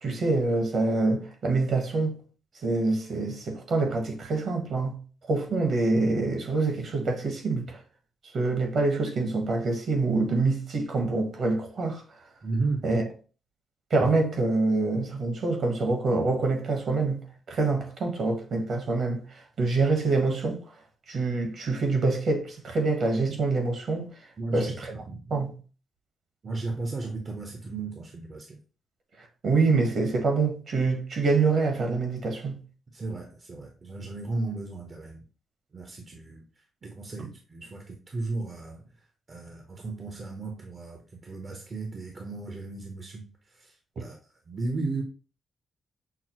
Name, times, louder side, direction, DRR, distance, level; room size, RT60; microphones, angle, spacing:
voice 1, 0.0-2.2 2.6-5.0 5.3-7.8 8.3-12.0 12.8-13.1 13.9-20.6 21.1-24.1 24.5-24.9 25.3-25.6 29.4-32.6 37.2-37.3, right 3 dB, 60° right, 1.2 m, -26 dB
voice 2, 12.4-12.9 24.4-25.2 26.4-28.6 32.9-35.2 35.7-36.4 36.8-38.8 39.3-43.3 43.5-44.2 44.5-45.0, right 3 dB, 45° right, 0.7 m, -35 dB
5.8 x 2.0 x 2.9 m
cardioid pair, 65°, 0 cm